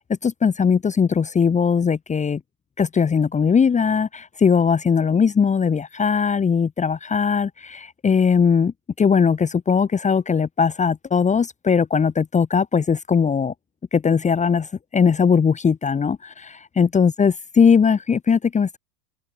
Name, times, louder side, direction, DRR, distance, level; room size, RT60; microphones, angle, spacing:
voice 1, 0.2-2.4 2.8-13.5 13.9-18.8, left 6 dB, 15° left, 1.9 m, -19 dB
hypercardioid pair, 115°, 46 cm